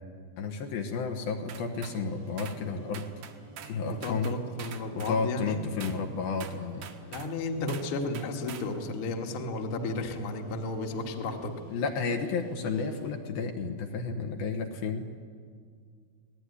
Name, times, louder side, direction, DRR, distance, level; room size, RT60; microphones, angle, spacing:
voice 1, 0.4-3.1 3.7-4.3 4.9-6.9 7.6-7.7 11.7-15.0, left 4 dB, 70° left, 3 dB, 3.0 m, -32 dB
sound 1, 1.5-2.0 2.4-2.6 2.9-3.8 4.0-5.2 5.8-6.0 6.4-7.3 7.7-7.9 8.1-8.7, right 9 dB, 65° right, 2.9 m, -45 dB
sound 2, 1.7-13.1, equal, 85° right, 8.3 m, -53 dB
voice 2, 3.8-5.6 7.1-11.5, left 2 dB, 40° left, 2 dB, 2.1 m, -33 dB
25.5 x 18.5 x 9.8 m, 2.1 s
omnidirectional pair, 4.8 m